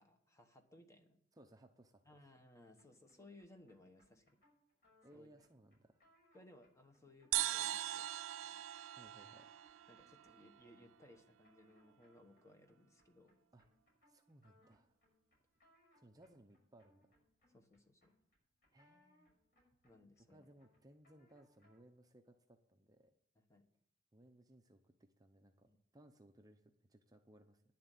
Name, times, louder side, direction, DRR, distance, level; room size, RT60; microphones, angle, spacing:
voice 1, 0.0-1.2 2.0-4.4 5.1-5.3 6.3-8.1 9.9-13.4 17.5-18.1 19.8-20.5 23.3-23.7 25.7-25.8, left 1 dB, 15° left, 6 dB, 1.2 m, -63 dB
voice 2, 1.3-2.0 5.0-6.0 8.9-9.5 13.5-13.7 14.1-14.9 15.9-17.2 18.7-19.3 20.3-23.1 24.1-27.6, right 1 dB, 20° right, 5 dB, 0.7 m, -64 dB
sound 1, 2.8-22.0, left 1 dB, 50° left, 6.2 m, -75 dB
sound 2, 7.3-10.8, right 14 dB, 90° right, 0.4 m, -41 dB
10.5 x 7.5 x 8.4 m, 0.68 s
head